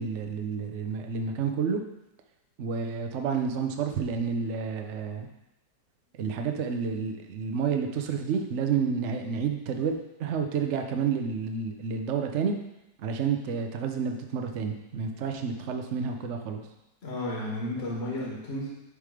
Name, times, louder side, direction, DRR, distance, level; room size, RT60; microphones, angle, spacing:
voice 1, 0.0-1.8 2.6-5.3 6.2-9.9 10.2-12.5 13.0-16.6, right 6 dB, 55° right, 4 dB, 0.9 m, -30 dB
voice 2, 17.0-18.7, left 1 dB, 40° left, -3 dB, 1.7 m, -32 dB
10.0 x 3.4 x 4.9 m, 0.91 s
omnidirectional pair, 1.7 m